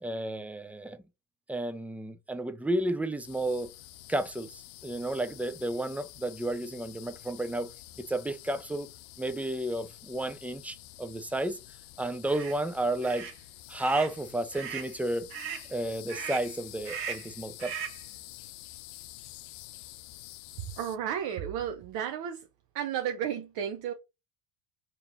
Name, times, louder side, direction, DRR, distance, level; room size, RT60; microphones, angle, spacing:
voice 1, 0.0-1.0 1.5-3.7 4.1-7.7 8.0-8.9 9.2-11.6 12.0-13.3 13.7-15.3 15.7-17.8, right 1 dB, 5° right, 0.4 m, -32 dB
sound 1, 3.2-21.0, left 16 dB, 65° left, 0.6 m, -49 dB
sound 2, 12.2-12.5 13.0-13.4 13.8-14.1 14.5-14.9 15.3-15.7 16.1-16.5 16.8-17.3 17.6-18.0, right 7 dB, 75° right, 1.2 m, -38 dB
voice 2, 20.8-22.4 22.7-23.9, right 9 dB, 50° right, 0.8 m, -33 dB
5.0 x 3.0 x 2.7 m
hypercardioid pair, 65°, 48 cm